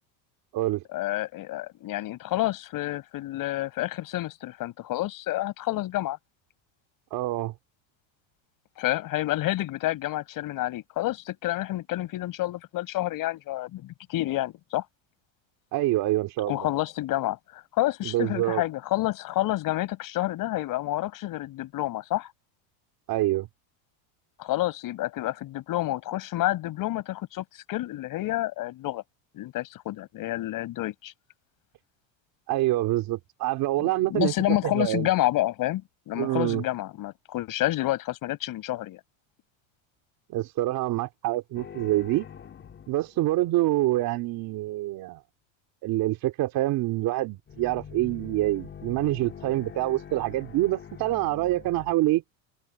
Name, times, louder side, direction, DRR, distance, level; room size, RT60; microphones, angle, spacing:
voice 1, 0.9-6.2 8.8-14.9 16.5-22.3 24.4-29.0 29.3-31.1 34.1-39.0, left 16 dB, 45° left, 5.6 m, -29 dB
voice 2, 7.1-7.5 15.7-16.7 18.0-18.6 23.1-23.5 32.5-35.1 36.2-36.6 40.3-42.3 42.9-45.2 45.8-52.2, right 16 dB, 45° right, 2.9 m, -26 dB
sound 1, 41.5-43.8 47.4-51.9, left 8 dB, 25° left, 3.0 m, -44 dB
cardioid pair, 155°, 46 cm